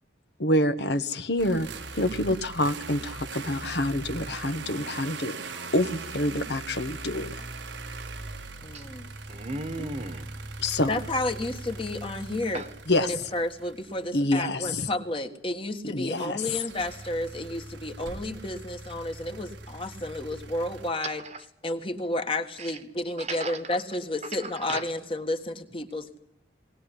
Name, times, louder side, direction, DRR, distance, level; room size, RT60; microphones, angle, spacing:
voice 1, 0.4-1.7 1.9-5.4 5.7-7.3 10.6-10.9 12.9-13.3 14.1-14.9 15.8-16.6, left 1 dB, 60° left, 10 dB, 1.3 m, -27 dB
sound 1, 1.4-14.4 16.2-20.9, right 3 dB, 70° right, 1.5 m, -40 dB
voice 2, 8.6-9.1 9.8-9.9 10.9-12.6 12.9-21.2 21.6-26.2, left 1 dB, 30° left, 7 dB, 1.7 m, -31 dB
voice 3, 9.3-10.3 12.5-12.7 21.0-21.4 22.6-22.7 23.2-23.6 24.3-24.8, right 3 dB, 35° right, 11 dB, 1.4 m, -36 dB
20.0 x 19.0 x 9.9 m, 0.78 s
head